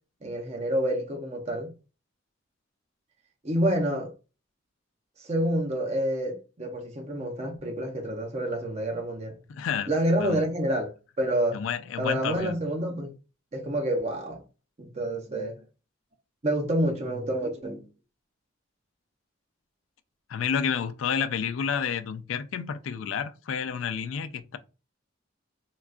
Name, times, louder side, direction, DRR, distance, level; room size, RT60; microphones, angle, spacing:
voice 1, 0.2-1.7 3.4-4.1 5.2-9.4 9.9-10.9 11.2-11.6 12.0-13.1 13.5-14.4 14.8-15.6 16.4-17.8, right 1 dB, 30° right, 0.6 m, -28 dB
voice 2, 9.5-9.9 10.2-10.4 11.5-12.6 20.3-24.6, left 7 dB, 80° left, 0.4 m, -30 dB
3.8 x 2.3 x 2.4 m
head